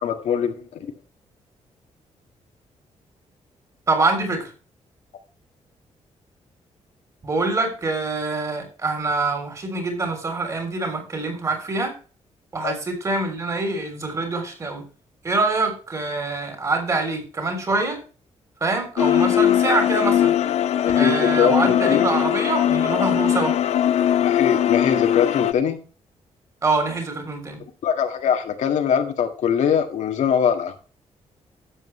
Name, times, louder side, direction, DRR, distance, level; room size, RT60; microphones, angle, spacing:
voice 1, 0.0-0.9 12.6-12.7 20.8-22.1 24.2-25.8 27.8-30.7, left 7 dB, 85° left, 5 dB, 1.8 m, -22 dB
voice 2, 3.9-4.5 7.2-11.9 12.5-14.8 15.2-18.0 18.6-20.3 21.0-23.5 26.6-27.6, right 3 dB, 30° right, 5 dB, 3.3 m, -25 dB
sound 1, 19.0-25.5, left 10 dB, 65° left, 0.6 m, -20 dB
12.0 x 7.9 x 3.2 m, 0.36 s
wide cardioid pair, 180°, 12 cm